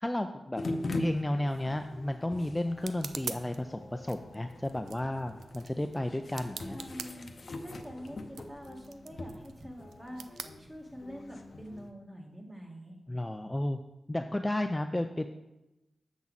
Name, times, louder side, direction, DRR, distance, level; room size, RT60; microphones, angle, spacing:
voice 1, 0.0-0.6 1.0-6.8 13.1-13.8 14.1-15.3, left 1 dB, 15° left, 7 dB, 0.4 m, -32 dB
sound 1, 0.6-11.9, left 2 dB, 55° left, 0.7 m, -42 dB
sound 2, 1.5-11.3, right 6 dB, 90° right, 0.3 m, -47 dB
voice 2, 6.7-7.3 7.6-13.0, equal, 20° right, 0 dB, 1.8 m, -46 dB
7.2 x 6.1 x 4.0 m, 0.97 s
cardioid pair, 55°, 0 cm